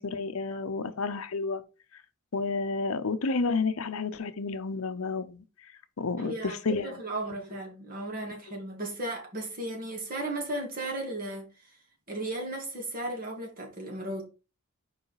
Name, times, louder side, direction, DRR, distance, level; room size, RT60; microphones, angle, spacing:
voice 1, 0.0-1.6 2.3-5.4 6.0-6.9, left 4 dB, 70° left, 0.6 m, -30 dB
voice 2, 6.2-11.8 12.1-14.2, right 1 dB, 40° right, 2.2 m, -35 dB
5.0 x 4.8 x 4.7 m
head